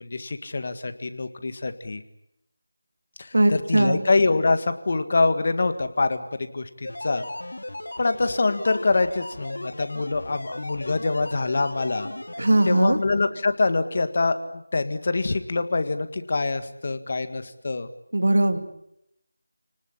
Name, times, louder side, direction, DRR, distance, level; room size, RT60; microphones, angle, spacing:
voice 1, 0.0-2.0 3.2-7.3 8.0-12.1 12.7-14.4 14.7-17.9, left 3 dB, 40° left, 10 dB, 1.8 m, -25 dB
voice 2, 3.3-4.1 12.4-13.0 18.1-18.6, right 1 dB, 70° right, 8 dB, 3.0 m, -20 dB
sound 1, 6.8-12.7, left 1 dB, 80° left, 3.0 m, -36 dB
29.5 x 19.0 x 8.6 m, 0.80 s
figure-of-eight pair, 170°, 0 cm